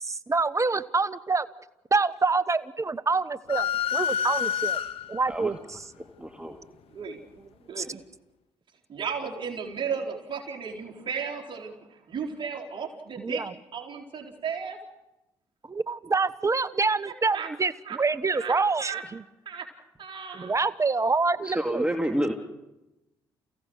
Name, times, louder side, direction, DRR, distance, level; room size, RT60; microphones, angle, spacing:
voice 1, 0.0-1.5 1.9-4.8 5.1-5.6 7.8-7.9 13.2-13.5 15.7-19.2 20.3-21.8, right 4 dB, 30° right, 16 dB, 1.2 m, -26 dB
sound 1, 3.5-5.3, left 8 dB, 70° left, 0.8 m, -28 dB
voice 2, 6.2-6.6 21.4-22.3, equal, 10° right, 4 dB, 2.3 m, -28 dB
voice 3, 8.9-11.8 12.1-13.4 13.7-14.8 17.3-17.5 17.9-18.0 18.3-18.5 18.8-19.0 19.5-19.7 20.0-20.6, right 6 dB, 50° right, 1 dB, 4.3 m, -34 dB
29.5 x 16.5 x 6.4 m, 0.94 s
hypercardioid pair, 50°, 10 cm